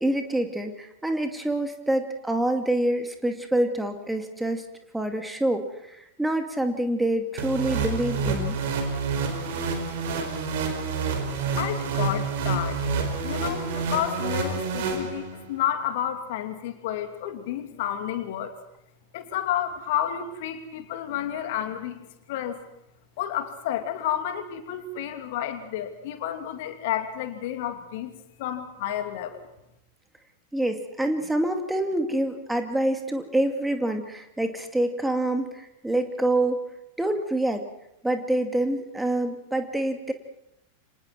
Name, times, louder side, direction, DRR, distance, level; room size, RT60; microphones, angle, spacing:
voice 1, 0.0-4.6 4.9-8.6 30.5-36.7 37.0-37.6 38.0-40.1, right 1 dB, 5° right, 5 dB, 2.3 m, -26 dB
sound 1, 7.4-15.5, right 4 dB, 55° right, 4.8 m, -28 dB
voice 2, 11.6-12.8 13.2-18.6 19.1-22.6 23.2-28.1 28.4-29.5, left 10 dB, 50° left, 7 dB, 2.6 m, -31 dB
29.5 x 26.0 x 4.6 m, 0.82 s
figure-of-eight pair, 90°, 0 cm